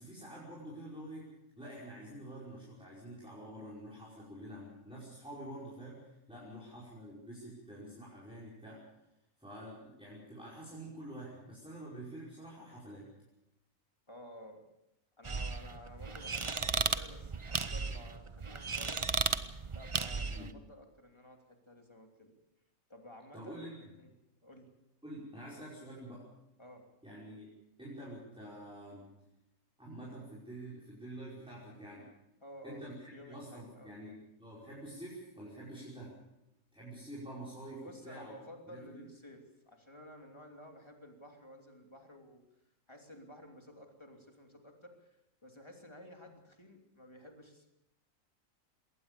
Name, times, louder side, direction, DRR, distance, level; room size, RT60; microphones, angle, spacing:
voice 1, 0.0-8.8 9.4-13.1 20.3-20.6 23.3-23.8 25.0-26.3 27.0-27.5 27.8-29.1 29.8-32.1 32.6-33.0 33.3-36.2 36.7-38.3 38.7-39.1, right 1 dB, 5° right, -6 dB, 5.4 m, -47 dB
voice 2, 14.1-14.6 15.2-19.2 19.7-22.3 22.9-24.1 24.4-24.7 26.6-26.9 32.4-32.9 33.1-33.9 37.8-42.4 42.9-47.7, left 1 dB, 20° left, 3 dB, 3.1 m, -53 dB
sound 1, 15.2-20.5, right 4 dB, 30° right, 0.7 m, -35 dB
21.0 x 18.5 x 6.9 m, 0.87 s
omnidirectional pair, 1.4 m